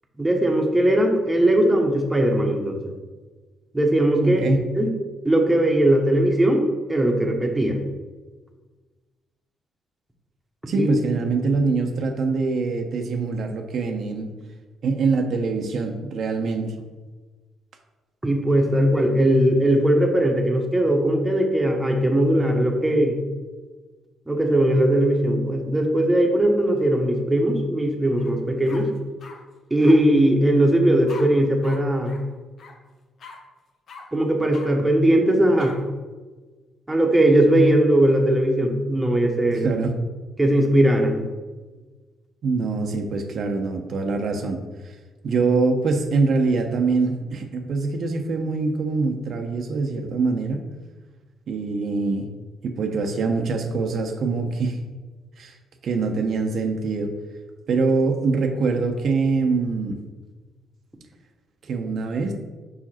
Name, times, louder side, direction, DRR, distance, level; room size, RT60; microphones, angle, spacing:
voice 1, 0.2-2.8 3.7-4.4 4.8-4.9 5.2-6.6 6.9-7.8 10.7-10.9 18.2-23.1 24.3-28.9 29.7-32.1 34.1-35.7 36.9-39.7 40.4-41.3, right 1 dB, 15° right, 1 dB, 1.1 m, -19 dB
voice 2, 4.2-4.6 10.7-14.3 14.8-16.7 39.5-39.9 42.4-44.6 44.8-44.9 45.2-50.6 51.5-52.3 52.6-54.8 55.4-55.6 55.8-57.1 57.7-60.0 61.7-62.3, right 4 dB, 60° right, 3 dB, 0.7 m, -24 dB
sound 1, 28.2-28.3 28.7-29.4 29.8-30.0 31.1-31.2 31.6-31.8 32.0-32.2 32.6-32.7 33.2-33.4 33.9-34.0 34.5-34.7 35.6-35.7, left 5 dB, 60° left, 1.0 m, -41 dB
5.1 x 4.9 x 4.3 m, 1.3 s
cardioid pair, 90°, 0 cm